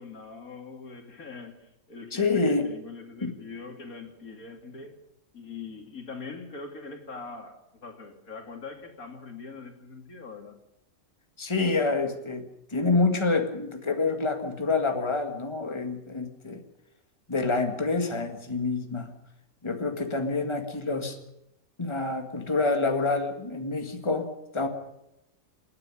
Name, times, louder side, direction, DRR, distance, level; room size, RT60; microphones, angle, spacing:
voice 1, 0.0-5.0 5.3-10.6, left 4 dB, 85° left, 3.0 m, -42 dB
voice 2, 2.1-2.7 3.2-3.3 11.4-12.5 12.7-16.6 17.3-19.1 19.6-21.2 21.8-24.3 24.5-24.7, left 3 dB, 20° left, 2.0 m, -27 dB
28.5 x 9.9 x 9.9 m
omnidirectional pair, 1.5 m